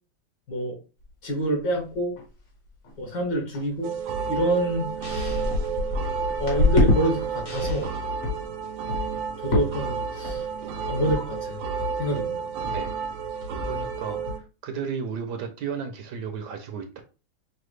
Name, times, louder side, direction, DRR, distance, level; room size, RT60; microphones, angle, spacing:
sound 1, 1.0-1.1 1.6-1.7 1.9-2.4 2.7-2.9 3.5-3.6 4.3-4.4 4.7-7.0 7.3-7.9 8.2-8.4 8.9-9.2 9.5-9.9 10.2-10.6 11.1-11.2 11.5-11.6 11.8-12.2 12.6-12.8 13.1-13.2 13.4-13.8 14.2-14.4, left 2 dB, 45° left, 1.2 m, -26 dB
voice 1, 1.2-2.2 3.0-4.0 4.3-5.4 6.4-7.9 9.4-10.4 10.9-11.6 12.0-12.5, right 1 dB, 65° left, 2.1 m, -27 dB
sound 2, 3.8-14.4, right 6 dB, 85° right, 1.4 m, -31 dB
sound 3, 5.0-5.6 7.5-8.1, right 2 dB, 30° left, 0.4 m, -41 dB
voice 2, 13.6-14.2 14.6-17.0, right 6 dB, 70° right, 1.1 m, -33 dB
5.8 x 2.1 x 3.2 m
omnidirectional pair, 2.1 m